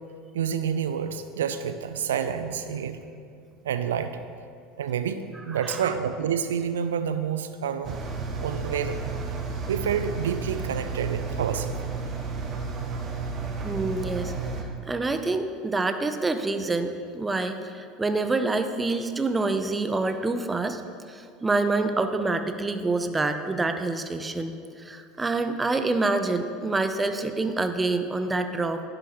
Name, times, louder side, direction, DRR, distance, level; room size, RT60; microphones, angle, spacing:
voice 1, 0.3-3.0 3.6-4.2 4.8-5.2 5.5-8.0 8.4-9.0 9.7-11.8 14.1-14.2, right 7 dB, 75° right, 10 dB, 0.3 m, -28 dB
Engine, 7.8-14.6, right 4 dB, 40° right, 1.0 m, -32 dB
voice 2, 13.6-14.3 14.9-20.8 21.1-28.8, right 3 dB, 15° right, 8 dB, 0.5 m, -27 dB
11.0 x 6.3 x 3.0 m, 2.3 s
hypercardioid pair, 75°, 0 cm